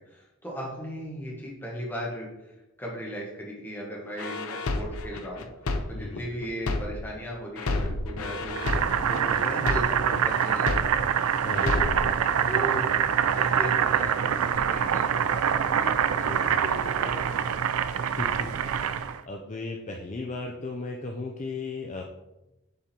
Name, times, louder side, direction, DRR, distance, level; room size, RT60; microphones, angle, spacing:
voice 1, 0.1-5.4 5.9-8.6 9.0-10.8 11.6-11.9 12.3-12.9 13.3-17.3, equal, 10° left, -3 dB, 1.5 m, -37 dB
sound 1, 4.2-7.2 7.6-11.2 11.6-12.2, left 2 dB, 85° left, 0.6 m, -30 dB
voice 2, 5.9-6.3 11.4-11.8 16.2-16.6 18.1-22.0, left 3 dB, 35° left, 2 dB, 0.5 m, -36 dB
Boiling, 8.6-19.2, right 8 dB, 85° right, 0.4 m, -25 dB
7.2 x 3.8 x 4.3 m, 0.96 s
head